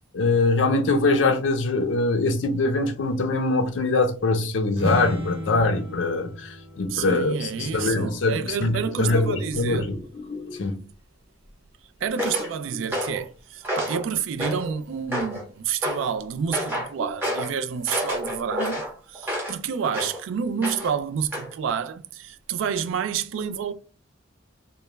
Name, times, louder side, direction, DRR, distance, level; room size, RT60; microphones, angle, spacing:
voice 1, 0.1-10.0 10.6-10.8, left 3 dB, 70° left, 0.5 m, -23 dB
sound 1, 0.9-1.8 2.4-2.5 5.0-5.1 6.7-7.5 8.4-10.8 11.4-11.7 12.0-13.3 14.8-15.1 15.5-15.9 16.3-16.4 16.8-17.4, left 3 dB, 30° left, 0.7 m, -40 dB
sound 2, 4.7-8.4, left 1 dB, 55° right, 0.8 m, -33 dB
voice 2, 6.9-9.9 12.0-18.8 19.1-23.7, right 7 dB, 90° right, 0.3 m, -29 dB
sound 3, 12.2-12.5 12.9-13.2 13.6-14.0 14.4-14.7 15.1-15.4 15.8-16.1 16.5-16.9 17.2-17.5 17.9-19.6 19.9-20.2 20.6-21.0 21.3-21.5, equal, 10° right, 0.8 m, -29 dB
2.2 x 2.1 x 3.0 m
head